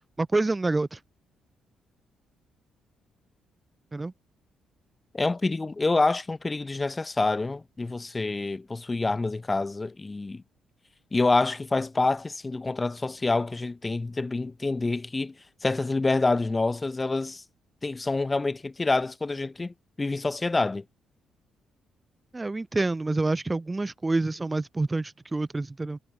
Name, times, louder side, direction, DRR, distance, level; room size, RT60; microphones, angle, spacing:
voice 1, 0.2-1.0 3.9-4.1 22.3-26.0, right 2 dB, 20° right, 4.6 m, -27 dB
voice 2, 5.1-10.4 11.1-15.3 15.6-17.4 17.8-20.8, left 3 dB, 20° left, 7.8 m, -27 dB
cardioid pair, 90°, 0 cm